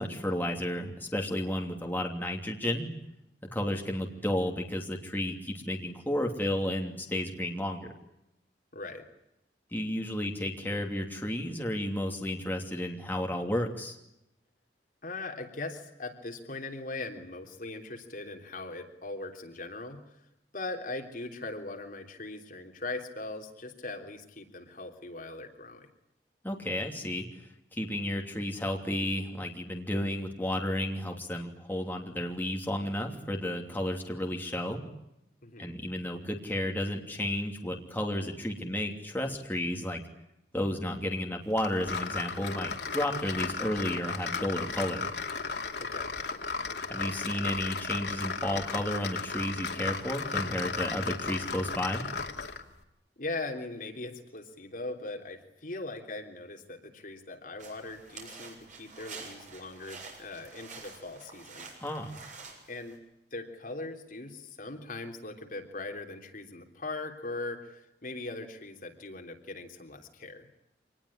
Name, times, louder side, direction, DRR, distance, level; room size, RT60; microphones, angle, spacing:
voice 1, 0.0-2.9 3.5-7.9 9.7-14.0 26.4-27.3 27.7-34.8 35.6-40.0 40.5-45.0 46.9-52.1 61.8-62.2, left 1 dB, 10° left, 2 dB, 2.9 m, -32 dB
voice 2, 8.7-9.0 15.0-20.2 20.5-25.9 35.4-35.7 45.8-46.1 53.2-61.7 62.7-63.0 63.3-70.5, left 2 dB, 50° left, 4 dB, 3.3 m, -40 dB
sound 1, 41.6-52.7, left 4 dB, 70° left, 2.6 m, -35 dB
sound 2, 57.6-63.0, right 4 dB, 45° right, 7.1 m, -48 dB
26.0 x 20.0 x 10.0 m, 0.86 s
head